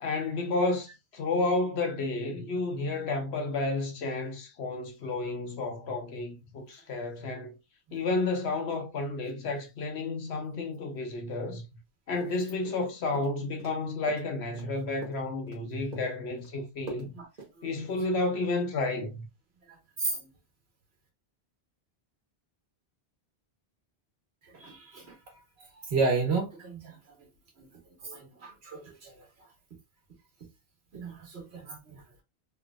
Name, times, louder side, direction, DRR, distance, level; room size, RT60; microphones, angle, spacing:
voice 1, 0.0-7.5 7.9-11.6 12.1-17.1 17.6-19.2, left 3 dB, 75° left, 1.1 m, -31 dB
sound 1, 12.2-12.9 13.1-13.8 14.1-15.6 15.9-16.5 16.9-17.1 17.4-17.5, right 3 dB, 40° right, 1.2 m, -44 dB
voice 2, 19.7-20.3 24.4-25.2 25.6-27.0 27.6-27.7 28.0-29.3 30.9-32.0, right 4 dB, 75° right, 1.5 m, -33 dB
3.2 x 3.0 x 2.3 m
omnidirectional pair, 1.1 m